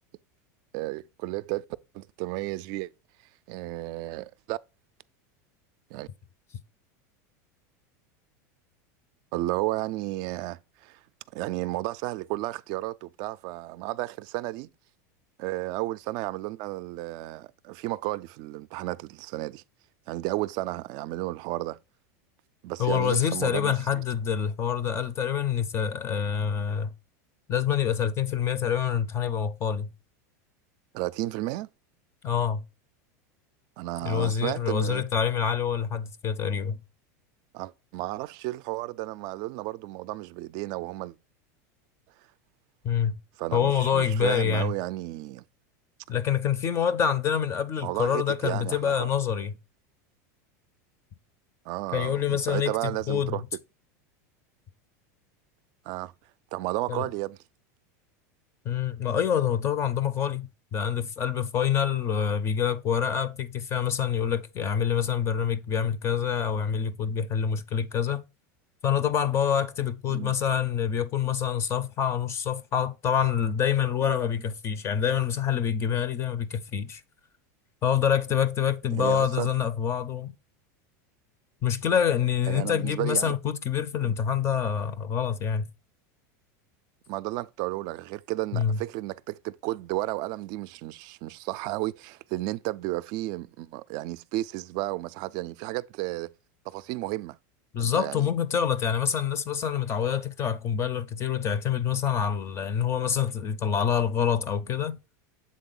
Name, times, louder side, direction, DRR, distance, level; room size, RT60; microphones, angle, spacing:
voice 1, 0.7-1.6 1.9-2.9 3.5-4.6 5.9-6.1 9.3-11.0 11.3-14.7 15.4-19.6 20.1-21.8 22.6-24.0 30.9-31.7 33.8-35.0 37.5-41.2 43.4-45.4 47.8-49.1 51.7-53.4 55.9-56.1 56.5-57.4 70.1-70.3 78.9-79.5 82.5-83.4 84.0-84.1 87.1-96.3 96.7-97.4 97.8-98.3, right 18 dB, 50° right, 0.3 m, -33 dB
voice 2, 22.8-26.9 27.5-29.9 32.2-32.6 34.0-36.8 42.8-43.2 43.5-44.7 46.1-49.5 51.9-52.7 53.1-53.4 56.9-57.1 58.6-68.2 68.8-77.0 77.8-80.3 81.6-85.7 88.5-88.8 97.7-105.0, left 8 dB, 30° left, 0.4 m, -26 dB
7.4 x 3.6 x 3.9 m
supercardioid pair, 135°, 9 cm